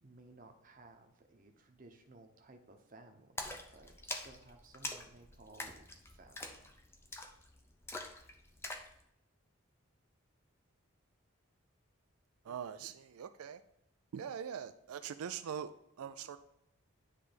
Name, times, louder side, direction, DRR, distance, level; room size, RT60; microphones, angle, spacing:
voice 1, 0.0-6.7, right 2 dB, 40° right, 4 dB, 0.8 m, -58 dB
Splash splatter, 3.4-8.9, left 2 dB, 10° left, 0.5 m, -45 dB
voice 2, 12.4-13.6 14.1-15.7 16.0-16.4, right 8 dB, 90° right, 10 dB, 0.4 m, -42 dB
9.8 x 3.3 x 5.1 m, 0.78 s
head